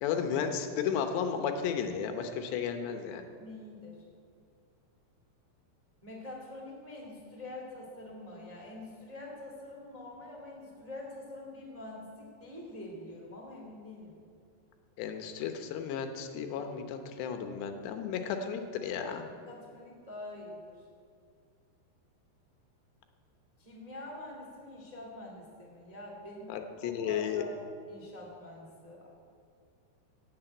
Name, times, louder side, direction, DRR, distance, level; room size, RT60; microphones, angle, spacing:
voice 1, 0.0-3.2 15.0-19.2 26.5-27.4, left 7 dB, 80° left, 6 dB, 3.2 m, -33 dB
voice 2, 3.1-4.0 6.0-14.1 19.4-20.9 23.6-26.5 26.8-27.6 27.8-29.1, left 1 dB, 15° right, -2 dB, 1.5 m, -45 dB
16.0 x 7.5 x 9.0 m, 2.3 s
omnidirectional pair, 4.9 m